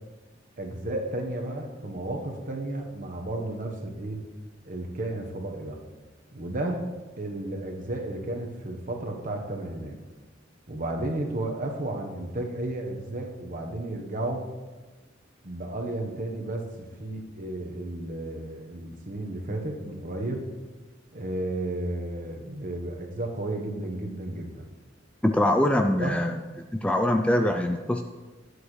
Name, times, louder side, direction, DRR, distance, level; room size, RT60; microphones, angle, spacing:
voice 1, 0.6-4.2 4.6-5.8 6.3-6.8 7.2-10.0 10.7-14.5 15.4-20.4 21.1-24.7 25.9-26.4, right 1 dB, 45° right, 2 dB, 1.1 m, -33 dB
voice 2, 25.2-26.3 26.8-28.0, left 1 dB, 5° left, 5 dB, 0.3 m, -23 dB
11.0 x 7.9 x 3.2 m, 1.2 s
head